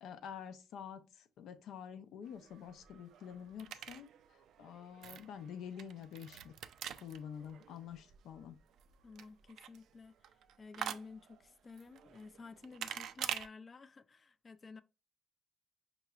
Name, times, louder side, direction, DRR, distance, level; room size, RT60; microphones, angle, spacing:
voice 1, 0.0-4.1 4.6-6.6 7.0-8.6, left 8 dB, 85° left, 0.6 m, -48 dB
sound 1, 2.2-13.5, right 9 dB, 80° right, 0.3 m, -47 dB
voice 2, 9.0-14.8, left 4 dB, 30° left, 0.3 m, -53 dB
5.6 x 2.9 x 2.4 m
cardioid pair, 115°, 0 cm